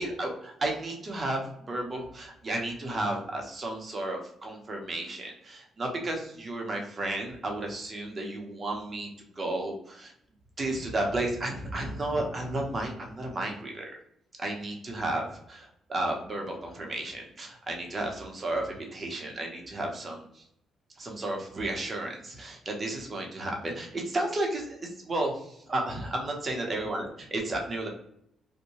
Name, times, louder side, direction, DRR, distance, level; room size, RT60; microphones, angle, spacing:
voice 1, 0.0-9.1 9.4-10.1 10.6-13.8 14.4-20.4 21.0-27.9, right 2 dB, 35° right, 1 dB, 0.8 m, -33 dB
2.7 x 2.2 x 2.9 m, 0.73 s
cardioid pair, 90°, 0 cm